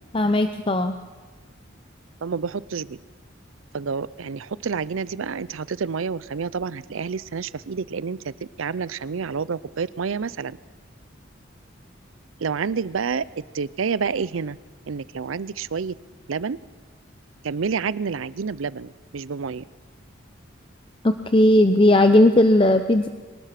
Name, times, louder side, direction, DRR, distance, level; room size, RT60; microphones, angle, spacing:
voice 1, 0.1-1.0 21.0-23.1, left 1 dB, 25° left, 8 dB, 0.6 m, -17 dB
voice 2, 2.2-3.0 3.7-8.2 8.6-10.6 12.4-13.3 13.5-14.6 14.9-15.9 16.3-16.6 17.4-19.6, right 5 dB, 85° right, 19 dB, 0.5 m, -28 dB
23.5 x 19.5 x 5.9 m, 1.4 s
head